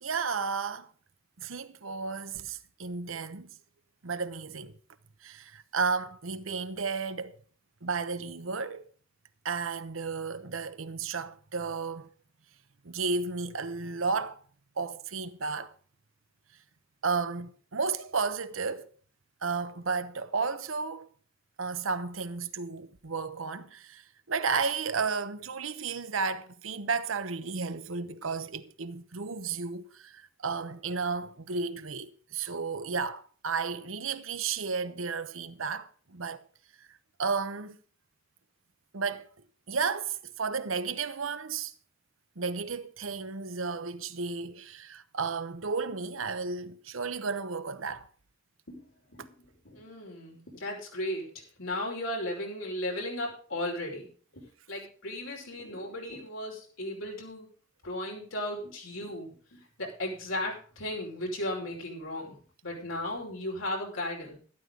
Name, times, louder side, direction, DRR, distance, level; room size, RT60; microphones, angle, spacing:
voice 1, 0.0-0.9 1.4-3.6 4.0-4.7 5.2-7.4 7.8-8.8 9.4-12.1 12.8-14.4 14.8-15.7 17.0-18.9 19.4-21.1 21.6-36.4 36.8-37.8 38.9-39.3 39.7-41.7 42.4-48.1 49.2-49.3, right 5 dB, 85° right, 1.0 m, -33 dB
voice 2, 48.7-49.3 49.6-51.3 51.6-54.1 54.3-57.5 57.8-62.3 62.6-64.4, left 1 dB, 85° left, 5.4 m, -36 dB
12.5 x 12.5 x 3.9 m
head